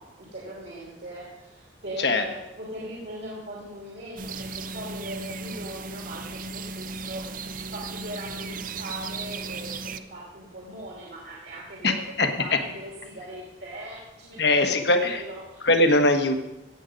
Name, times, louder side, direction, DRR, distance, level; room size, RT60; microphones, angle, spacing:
voice 1, 0.0-15.7, right 1 dB, 65° right, -4 dB, 2.8 m, -40 dB
sound 1, 4.2-10.0, right 4 dB, 50° right, 0.6 m, -36 dB
voice 2, 11.8-12.6 14.4-15.2 15.6-16.3, left 2 dB, 60° left, 6 dB, 1.3 m, -21 dB
16.0 x 8.1 x 5.2 m, 0.93 s
head